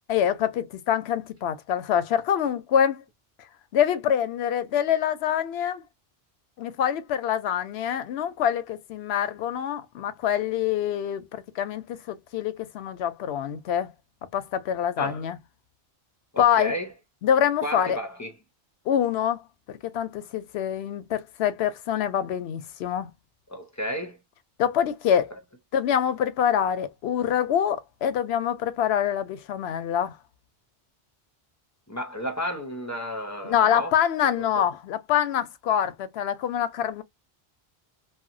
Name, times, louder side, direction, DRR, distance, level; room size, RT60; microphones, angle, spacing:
voice 1, 0.1-3.0 3.7-5.8 6.6-13.9 14.3-15.4 16.4-16.7 17.2-18.0 18.9-19.4 19.8-23.1 24.6-25.3 25.7-30.2 33.4-37.0, left 9 dB, 85° left, 0.8 m, -25 dB
voice 2, 16.3-16.9 17.6-18.3 23.5-24.2 31.9-34.0 34.5-34.7, equal, 20° left, 0.5 m, -32 dB
2.8 x 2.2 x 2.5 m
omnidirectional pair, 1.0 m